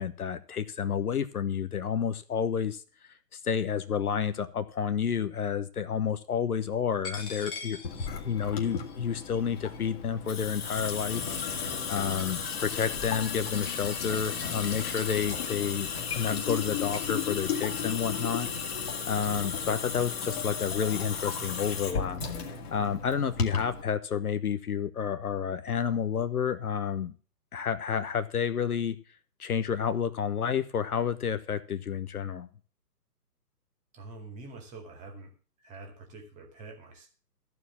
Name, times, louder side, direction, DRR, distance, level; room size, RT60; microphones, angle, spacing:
voice 1, 0.0-2.8 3.4-7.8 8.2-11.2 11.9-18.5 19.1-22.2 22.7-27.1 27.5-29.0 29.4-32.5, left 7 dB, 65° left, 11 dB, 1.2 m, -30 dB
Coin (dropping), 7.0-15.2, left 4 dB, 10° left, 1.0 m, -46 dB
Water tap faucet / Sink (filling or washing) / Drip, 7.8-23.8, left 6 dB, 35° left, 2.2 m, -34 dB
voice 2, 33.9-35.3 35.6-37.1, right 3 dB, 15° right, 3 dB, 2.2 m, -46 dB
14.0 x 4.9 x 8.4 m, 0.38 s
hypercardioid pair, 145°, 49 cm